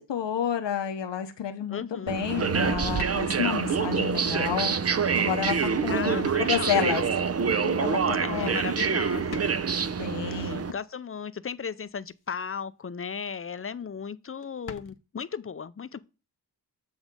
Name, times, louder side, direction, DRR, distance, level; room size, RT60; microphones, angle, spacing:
voice 1, 0.0-4.8 5.2-7.0 7.5-8.0 8.3-8.6 10.0-10.6, left 9 dB, 75° left, 1.1 m, -30 dB
voice 2, 1.7-2.2 5.9-7.0 8.2-9.5 10.3-16.0, left 6 dB, 30° left, 0.6 m, -36 dB
sound 1, 2.1-10.7, right 6 dB, 35° right, 0.6 m, -26 dB
sound 2, 3.0-3.9 4.5-4.8 5.3-5.4 6.6-6.7 8.4-8.7 9.0-9.1 9.3-9.9 11.9-12.4 12.7-13.0 13.3-13.4 13.6-13.7 14.0-14.1 14.4-15.0, left 7 dB, 60° left, 1.0 m, -46 dB
8.2 x 3.5 x 5.2 m
cardioid pair, 70°, 44 cm